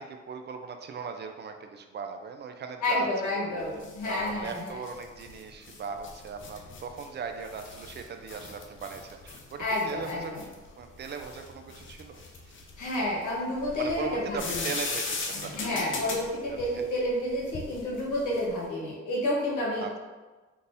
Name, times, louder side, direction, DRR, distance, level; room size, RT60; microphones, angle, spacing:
voice 1, 0.0-3.1 3.3-3.5 4.1-10.4 10.8-12.2 13.8-15.6 15.9-16.0 16.5-16.8 19.8-20.0, right 5 dB, 35° right, 6 dB, 0.4 m, -39 dB
voice 2, 2.8-4.8 9.6-10.4 12.8-14.7 15.5-19.8, left 1 dB, 80° left, -5 dB, 1.2 m, -30 dB
sound 1, 3.6-18.6, left 3 dB, 40° left, 0.6 m, -40 dB
3.7 x 2.8 x 2.6 m, 1.3 s
cardioid pair, 90°, 30 cm